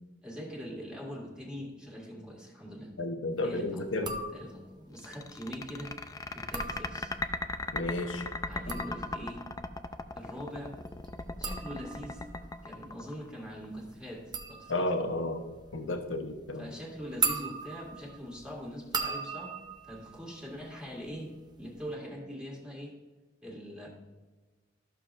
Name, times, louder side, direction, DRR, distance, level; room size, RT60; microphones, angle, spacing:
voice 1, 0.2-2.9 3.4-5.9 6.3-7.1 8.5-9.5 10.1-10.7 11.4-12.2 12.6-14.9 16.6-19.5 19.8-22.9 23.4-23.9, equal, 5° right, -3 dB, 1.9 m, -42 dB
voice 2, 3.0-4.1 7.7-8.3 14.7-15.4 15.7-16.7, left 2 dB, 80° left, 6 dB, 0.9 m, -32 dB
sound 1, 3.9-4.8 6.3-7.4 8.4-21.1 21.4-21.9, right 5 dB, 20° right, 0.6 m, -39 dB
sound 2, 5.0-13.7, left 3 dB, 20° left, 0.4 m, -37 dB
13.0 x 6.7 x 2.5 m, 1.2 s
head